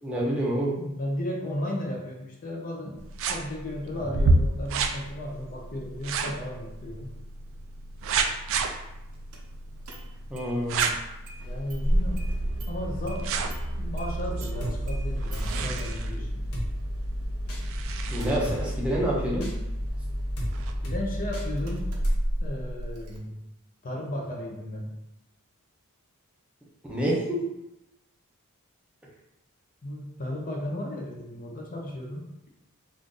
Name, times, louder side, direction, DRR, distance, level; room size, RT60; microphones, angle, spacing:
voice 1, 0.0-0.8 10.3-10.9 18.1-19.5 26.9-27.4, right 1 dB, 5° right, -5 dB, 0.6 m, -27 dB
voice 2, 0.7-3.0 3.3-7.1 11.4-12.2 12.7-13.3 13.8-16.4 20.8-21.9 22.4-23.4 23.8-24.9 29.8-32.3, left 1 dB, 40° left, -1 dB, 0.5 m, -35 dB
sound 1, 3.0-20.7, right 3 dB, 60° right, 0.3 m, -32 dB
Engine starting, 9.3-9.4 9.9-10.5 10.8-10.9 11.3-23.2, equal, 90° right, 0.6 m, -31 dB
Drum kit, 14.6-14.8 15.3-15.7 16.5-16.7 17.5-17.6 18.2-18.6 19.4-19.5 20.4-20.5 20.8-21.0 21.3-21.5 22.0-22.1, equal, 70° left, 0.9 m, -35 dB
2.5 x 2.5 x 3.6 m, 0.90 s
head